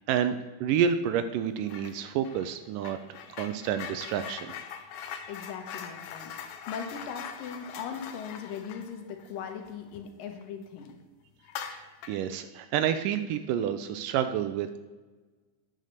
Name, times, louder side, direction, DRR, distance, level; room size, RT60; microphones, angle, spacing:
voice 1, 0.0-3.0 3.3-4.5 11.7-14.8, right 8 dB, 80° right, 10 dB, 2.1 m, -29 dB
sound 1, 1.7-2.0 2.2-10.4 10.8-10.9 11.4-12.3, left 8 dB, 70° left, 1.8 m, -42 dB
voice 2, 5.3-11.0, left 7 dB, 85° left, 4 dB, 2.8 m, -39 dB
9.5 x 6.5 x 6.6 m, 1.2 s
omnidirectional pair, 3.9 m